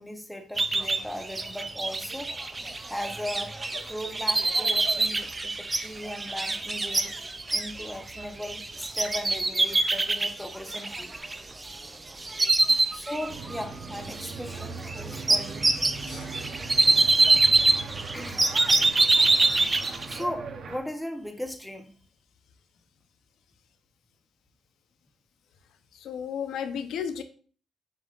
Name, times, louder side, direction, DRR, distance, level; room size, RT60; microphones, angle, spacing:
voice 1, 0.0-2.3 2.9-3.5 3.9-11.2 12.9-15.7 17.7-17.8 18.1-18.5 19.8-21.9, left 1 dB, 5° left, 5 dB, 0.9 m, -38 dB
sound 1, 0.6-11.9 12.2-13.6 13.9-20.2, right 3 dB, 20° right, 0.5 m, -25 dB
sound 2, 13.3-20.8, right 4 dB, 60° right, 0.9 m, -40 dB
voice 2, 26.0-27.2, left 7 dB, 85° left, 9 dB, 0.7 m, -33 dB
7.6 x 5.2 x 2.5 m, 0.42 s
cardioid pair, 140°, 0 cm